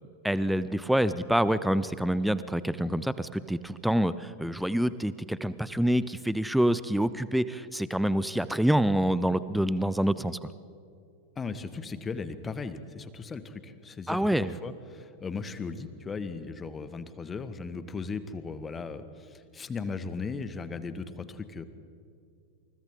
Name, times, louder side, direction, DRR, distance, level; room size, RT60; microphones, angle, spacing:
voice 1, 0.2-10.4 14.1-14.5, equal, ahead, 15 dB, 0.7 m, -26 dB
voice 2, 11.3-21.6, left 4 dB, 20° left, 12 dB, 1.5 m, -37 dB
29.0 x 28.5 x 3.8 m, 2.4 s
figure-of-eight pair, 90°, 0 cm